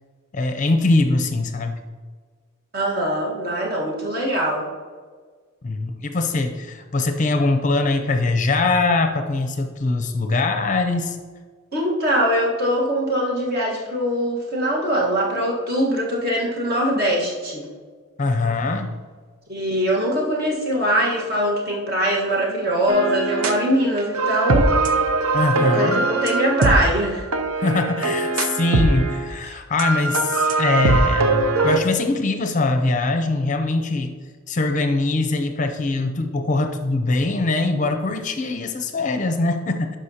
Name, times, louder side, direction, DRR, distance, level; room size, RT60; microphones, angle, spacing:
voice 1, 0.3-1.8 5.6-11.2 18.2-19.0 25.3-26.1 27.6-34.1 34.5-40.0, left 2 dB, 35° left, 5 dB, 0.5 m, -22 dB
voice 2, 2.7-4.7 11.7-17.7 19.5-24.8 25.6-27.2, equal, 45° right, -3 dB, 1.5 m, -22 dB
sound 1, 22.9-23.7 24.0-29.3 29.8-31.8, right 3 dB, 80° right, 0.6 m, -21 dB
11.5 x 5.1 x 2.8 m, 1.5 s
head